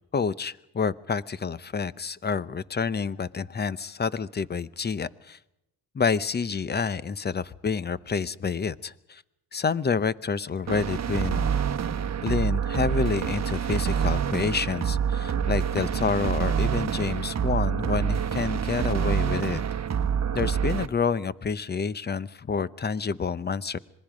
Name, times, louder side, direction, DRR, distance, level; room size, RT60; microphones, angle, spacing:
voice 1, 0.1-5.4 5.9-9.2 9.5-11.5 12.2-19.6 20.3-23.8, left 5 dB, 25° left, 17 dB, 0.7 m, -28 dB
sound 1, 10.7-20.9, right 7 dB, 40° right, 1.2 m, -27 dB
26.5 x 21.0 x 5.1 m, 0.86 s
cardioid pair, 105°, 41 cm